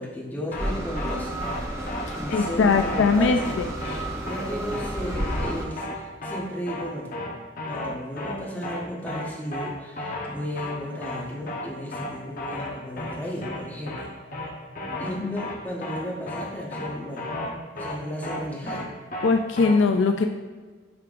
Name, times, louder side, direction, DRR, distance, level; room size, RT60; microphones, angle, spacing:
voice 1, 0.0-1.6 2.1-7.1 7.7-14.1 15.0-17.3 17.7-18.8, equal, 10° left, -5 dB, 1.1 m, -34 dB
sound 1, 0.5-0.7 1.0-1.1 1.4-1.6 1.9-2.0 2.3-2.5 2.8-3.1 3.4-3.5 3.8-4.0 4.3-4.4 4.7-4.9 5.2-5.5 5.8-5.9 6.2-6.4 6.7-6.8 7.1-7.3 7.6-7.9 8.2-8.3 8.6-8.8 9.1-9.2 9.5-9.7 10.0-10.3 10.6-10.7 11.0-11.2 11.5-11.6 11.9-12.1 12.4-12.7 13.0-13.1 13.4-13.6 13.9-14.0 14.3-14.5 14.8-15.1 15.4-15.5 15.8-16.0 16.3-16.4 16.7-16.9 17.2-17.5 17.8-17.9 18.2-18.4 18.7-18.8 19.1-19.3 19.6-19.7, left 2 dB, 40° left, 1.0 m, -33 dB
sound 2, 0.6-5.7, right 1 dB, 15° right, 0.6 m, -32 dB
voice 2, 2.1-4.0 15.2-15.4 19.2-20.3, left 4 dB, 60° left, 5 dB, 0.4 m, -22 dB
8.5 x 4.5 x 2.5 m, 1.4 s
head